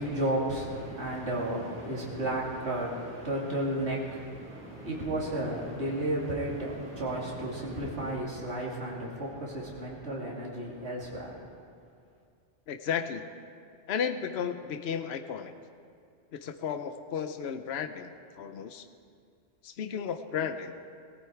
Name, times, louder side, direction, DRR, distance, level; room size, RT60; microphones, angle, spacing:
voice 1, 0.0-11.5, right 1 dB, 70° right, -4 dB, 3.1 m, -33 dB
sound 1, 0.6-8.2, right 1 dB, 10° right, 5.4 m, -46 dB
voice 2, 12.7-13.2 13.9-15.5 16.4-18.8 19.6-20.7, left 7 dB, 65° left, 7 dB, 1.0 m, -34 dB
19.0 x 15.5 x 4.6 m, 2.3 s
omnidirectional pair, 1.2 m